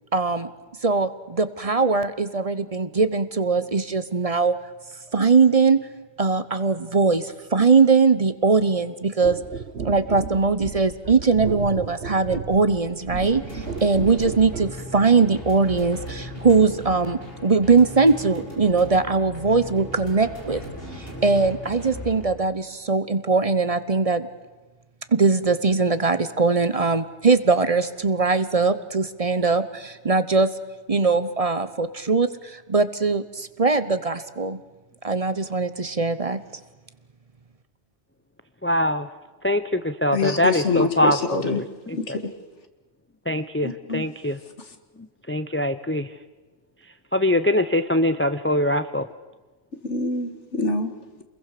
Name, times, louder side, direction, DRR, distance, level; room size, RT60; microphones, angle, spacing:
voice 1, 0.1-0.5 0.8-4.5 5.1-5.9 6.2-9.4 9.8-20.6 21.2-24.3 25.1-30.5 30.9-34.6 35.0-36.4, right 4 dB, 35° right, 0.9 m, -21 dB
sound 1, 9.2-14.8 15.7-15.8, right 5 dB, 65° right, 1.6 m, -34 dB
sound 2, 13.2-22.2, equal, 55° left, 5.5 m, -37 dB
voice 2, 38.6-39.1 39.4-42.0 43.3-44.4 45.3-46.1 47.1-49.1, left 1 dB, 15° left, 0.5 m, -23 dB
voice 3, 40.1-41.6 41.9-42.2 43.6-44.0 49.8-50.9, left 4 dB, 90° left, 2.1 m, -25 dB
28.0 x 21.5 x 6.7 m
omnidirectional pair, 1.2 m